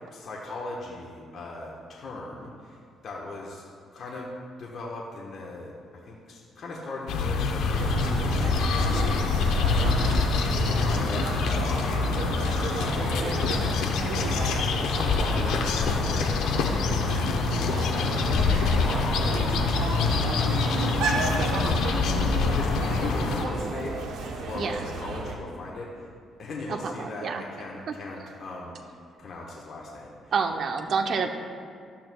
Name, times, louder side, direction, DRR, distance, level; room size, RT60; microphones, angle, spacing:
voice 1, 0.1-3.6 3.9-4.3 4.6-5.7 6.0-10.2 10.8-13.7 14.8-19.5 20.2-21.9 22.3-26.1 26.4-30.3, left 2 dB, 60° left, -3 dB, 1.1 m, -39 dB
sound 1, 7.1-23.4, left 4 dB, 85° left, 0.7 m, -25 dB
sound 2, 7.8-25.3, right 3 dB, 85° right, 0.9 m, -33 dB
voice 2, 26.7-27.4 30.3-31.3, right 5 dB, 60° right, 5 dB, 0.7 m, -28 dB
12.5 x 8.8 x 2.3 m, 2.2 s
cardioid pair, 90°, 0 cm